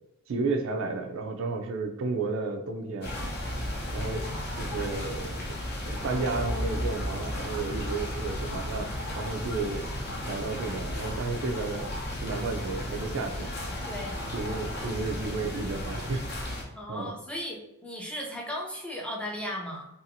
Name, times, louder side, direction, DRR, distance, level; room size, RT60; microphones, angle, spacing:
voice 1, 0.3-3.2 3.9-4.3 4.5-5.5 5.9-9.8 10.3-11.9 12.2-13.8 14.3-16.3 16.9-17.1, right 3 dB, 65° right, 5 dB, 0.4 m, -32 dB
sound 1, 3.0-16.6, left 1 dB, 50° left, 0.6 m, -35 dB
sound 2, 3.4-10.4, equal, 85° right, 1.0 m, -39 dB
voice 2, 13.8-14.2 16.8-17.6 17.8-19.9, left 1 dB, 5° left, -1 dB, 0.4 m, -36 dB
2.6 x 2.4 x 2.6 m, 0.85 s
head